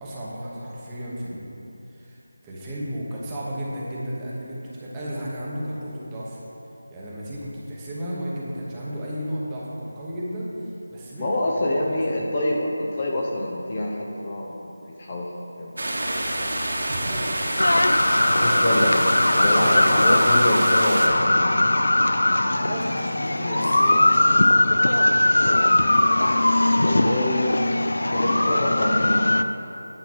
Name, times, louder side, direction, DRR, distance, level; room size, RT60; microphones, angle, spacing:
voice 1, 0.0-1.5 1.9-6.4 6.9-11.3 11.7-12.0 16.8-17.3 18.2-18.8 19.2-20.2 22.5-24.7, equal, 10° right, -6 dB, 1.1 m, -33 dB
voice 2, 11.2-15.3 15.6-15.9 18.4-19.0 19.4-21.8 26.8-27.7 28.0-29.3, left 1 dB, 25° left, -2 dB, 0.7 m, -26 dB
sound 1, 15.8-21.1, right 1 dB, 75° right, 2.0 m, -27 dB
sound 2, 17.6-29.4, left 1 dB, 90° left, 0.5 m, -20 dB
9.6 x 5.9 x 6.2 m, 2.9 s
figure-of-eight pair, 175°, 0 cm